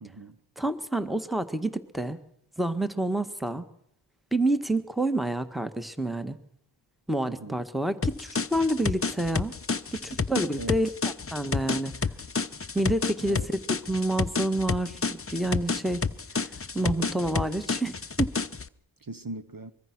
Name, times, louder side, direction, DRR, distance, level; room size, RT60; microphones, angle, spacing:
voice 1, 0.0-0.4 7.3-7.6 10.6-10.9 13.2-13.5 19.0-19.7, right 2 dB, 45° right, 1.2 m, -40 dB
voice 2, 0.6-2.2 2.6-3.6 4.3-6.4 7.1-9.5 9.9-10.9 11.3-11.9 12.7-13.6 13.9-16.1 16.4-18.3, right 1 dB, ahead, 1.6 m, -28 dB
sound 1, 8.0-18.7, left 4 dB, 30° left, 0.8 m, -30 dB
24.0 x 22.5 x 6.1 m
wide cardioid pair, 65°, 48 cm